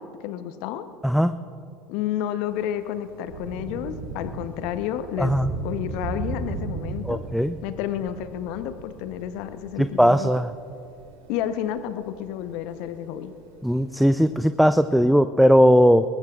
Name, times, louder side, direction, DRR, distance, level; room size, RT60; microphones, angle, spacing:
voice 1, 0.0-0.9 1.9-5.4 5.6-7.2 7.6-10.3 11.3-13.3, left 10 dB, 60° left, 11 dB, 0.8 m, -30 dB
voice 2, 1.0-1.3 5.2-5.5 7.0-7.5 9.8-10.5 13.6-16.0, equal, ahead, 11 dB, 0.4 m, -18 dB
Thunder / Rain, 2.4-14.9, right 3 dB, 75° right, 3.3 m, -37 dB
22.5 x 20.0 x 2.4 m, 2.7 s
figure-of-eight pair, 75°, 0 cm